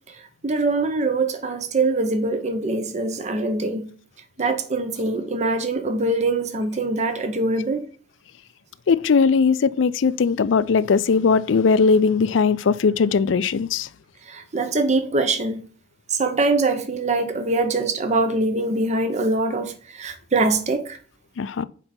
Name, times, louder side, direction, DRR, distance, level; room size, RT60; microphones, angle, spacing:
voice 1, 0.4-3.9 4.4-7.9 14.3-15.6 16.1-21.0, right 2 dB, 40° right, 0.7 m, -23 dB
voice 2, 8.9-13.9 21.4-21.6, left 5 dB, 90° left, 0.4 m, -19 dB
6.2 x 4.9 x 4.3 m
head